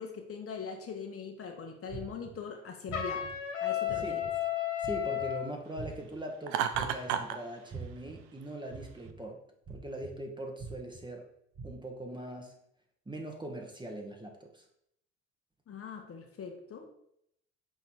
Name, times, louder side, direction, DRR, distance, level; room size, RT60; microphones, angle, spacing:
voice 1, 0.0-3.2 3.6-4.2 15.7-16.9, left 6 dB, 40° left, 3 dB, 1.2 m, -41 dB
sound 1, 1.9-2.3 2.9-3.3 3.9-4.3 4.8-5.2 5.8-6.2 6.7-7.1 7.7-8.1 8.7-9.1 9.6-10.1 10.6-11.0 11.5-11.6, right 5 dB, 35° right, 1.4 m, -43 dB
Trumpet, 2.9-5.5, left 11 dB, 85° left, 1.0 m, -33 dB
voice 2, 4.8-9.4 9.7-11.3 11.6-12.5 13.1-14.6, right 1 dB, 15° right, 2 dB, 1.2 m, -41 dB
Laughter, 6.5-7.4, right 9 dB, 70° right, 0.6 m, -31 dB
6.0 x 4.3 x 4.2 m, 0.75 s
hypercardioid pair, 55°, 36 cm